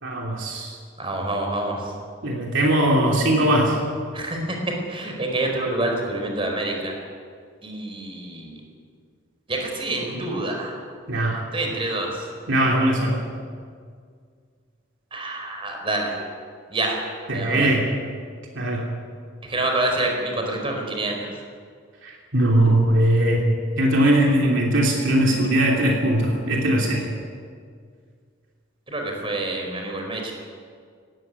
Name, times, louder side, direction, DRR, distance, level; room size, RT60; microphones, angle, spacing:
voice 1, 0.0-0.8 2.2-3.8 11.1-11.4 12.5-13.2 17.3-17.9 18.5-18.9 22.0-23.5 23.8-27.1, right 1 dB, 65° right, -1 dB, 3.0 m, -20 dB
voice 2, 1.0-1.9 4.1-4.6 4.9-6.9 7.6-8.6 9.5-10.7 11.5-12.3 15.1-16.2 16.7-17.0 17.3-17.7 19.5-21.3 28.9-30.3, right 2 dB, 25° right, 2 dB, 4.6 m, -27 dB
18.5 x 16.5 x 9.6 m, 2.1 s
head